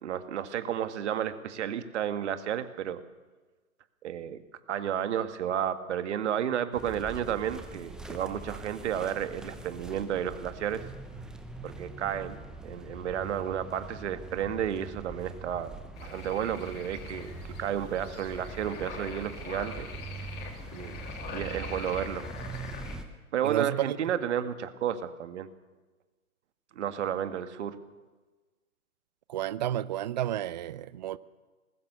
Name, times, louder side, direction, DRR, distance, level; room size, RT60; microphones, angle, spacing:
voice 1, 0.0-3.0 4.0-4.4 4.7-10.8 11.6-15.7 16.0-17.3 17.6-19.9 20.7-21.0 21.3-22.2 22.8-23.0 23.3-25.5 26.7-27.8, right 9 dB, 50° right, 10 dB, 1.8 m, -32 dB
sound 1, 6.7-23.0, right 2 dB, ahead, 0.9 m, -43 dB
sound 2, 16.0-23.0, left 5 dB, 20° left, 2.5 m, -44 dB
voice 2, 23.4-24.0 29.3-31.2, right 12 dB, 30° right, 19 dB, 0.5 m, -31 dB
20.0 x 19.5 x 6.9 m, 1.3 s
hypercardioid pair, 130°, 43 cm